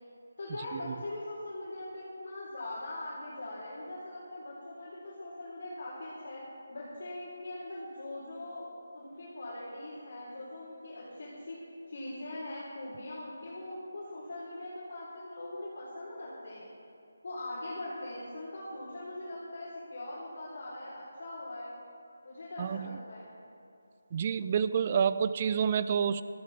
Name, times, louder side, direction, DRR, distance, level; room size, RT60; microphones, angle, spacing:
voice 1, 0.4-6.4 6.7-11.6 11.9-16.7 17.2-21.8 22.2-23.3, left 1 dB, 55° left, -8 dB, 3.9 m, -41 dB
voice 2, 24.1-26.2, right 7 dB, 30° right, 14 dB, 0.4 m, -28 dB
17.5 x 13.5 x 3.5 m, 2.7 s
figure-of-eight pair, 160°, 0 cm